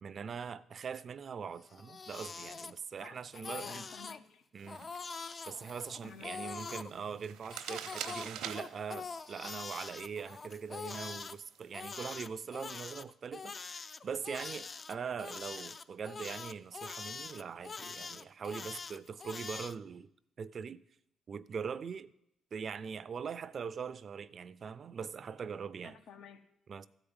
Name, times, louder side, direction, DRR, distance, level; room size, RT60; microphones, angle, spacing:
voice 1, 0.0-3.8 4.5-4.9 5.5-13.8 14.0-20.1 20.4-20.8 21.3-22.1 22.5-26.0 26.7-26.9, right 6 dB, 50° right, 0.5 m, -42 dB
Crying sobbing, 1.6-3.1 3.3-4.2 4.7-6.9 7.5-11.3 11.7-19.8, left 4 dB, 35° left, 0.5 m, -44 dB
voice 2, 3.0-4.4 6.0-6.6 25.8-26.5, left 6 dB, 80° left, 1.2 m, -53 dB
sound 1, 4.6-12.0, right 9 dB, 85° right, 0.9 m, -48 dB
13.5 x 5.0 x 8.9 m
cardioid pair, 90°, 0 cm